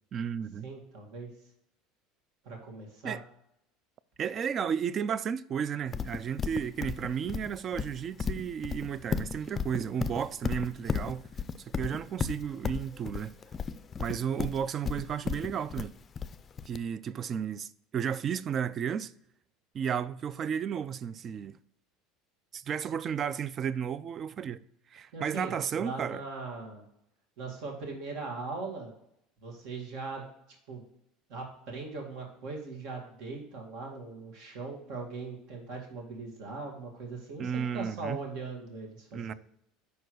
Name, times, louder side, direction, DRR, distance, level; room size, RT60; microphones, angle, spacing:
voice 1, 0.1-0.7 3.0-3.2 4.2-11.3 11.6-13.4 14.0-16.0 16.7-19.1 19.7-21.6 22.5-24.6 24.9-26.2 37.4-38.2 39.1-39.3, right 8 dB, 40° right, 0.3 m, -33 dB
voice 2, 0.6-1.3 2.4-3.2 25.1-26.9 27.4-28.9 29.4-30.3 30.7-30.9 31.3-39.3, right 3 dB, 65° right, 2.1 m, -40 dB
Livestock farm animals working animals, 5.9-16.8, left 6 dB, 30° left, 0.4 m, -34 dB
5.4 x 4.6 x 6.3 m
hypercardioid pair, 90°, 0 cm